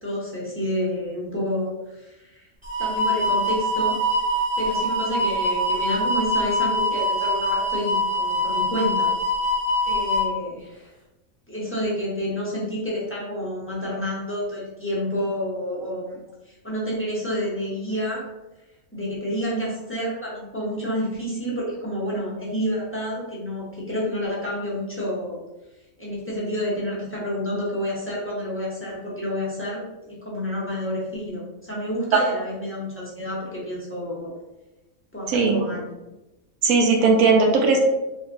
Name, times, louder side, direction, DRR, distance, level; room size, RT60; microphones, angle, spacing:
voice 1, 0.0-2.5 2.8-4.0 4.6-9.1 9.8-10.9 11.5-16.2 16.4-18.3 18.9-25.4 26.0-34.3 35.1-35.9, equal, 15° left, -7 dB, 0.5 m, -29 dB
sound 1, 2.6-10.2, equal, 5° right, 0.9 m, -24 dB
voice 2, 35.3-35.6 36.6-37.8, right 4 dB, 80° right, 2 dB, 1.0 m, -18 dB
3.2 x 2.7 x 2.5 m, 1.0 s
omnidirectional pair, 1.5 m